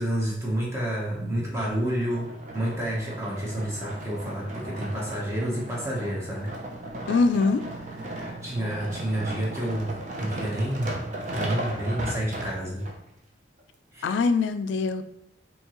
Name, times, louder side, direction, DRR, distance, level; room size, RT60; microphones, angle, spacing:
voice 1, 0.0-6.5 8.0-11.0 11.3-12.8 13.9-14.2, right 1 dB, 15° right, -4 dB, 0.9 m, -29 dB
sound 1, 2.0-13.0 13.6-13.7, right 1 dB, 40° right, 0.6 m, -36 dB
voice 2, 7.1-7.6 14.0-15.0, left 4 dB, 90° left, 9 dB, 0.3 m, -23 dB
4.5 x 2.8 x 3.0 m, 0.76 s
head